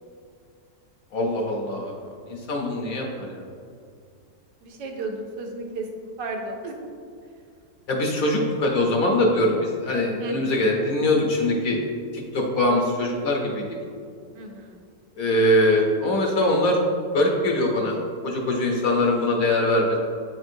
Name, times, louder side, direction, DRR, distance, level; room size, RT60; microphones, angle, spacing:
voice 1, 1.1-1.9 2.3-3.5 7.9-11.8 12.3-13.7 15.2-16.8 17.1-18.0 18.2-20.0, left 1 dB, 60° left, 0 dB, 1.1 m, -22 dB
voice 2, 4.6-6.7 10.2-10.6 14.3-14.8, right 3 dB, 75° right, 2 dB, 1.4 m, -33 dB
8.2 x 4.4 x 2.6 m, 2.3 s
omnidirectional pair, 1.9 m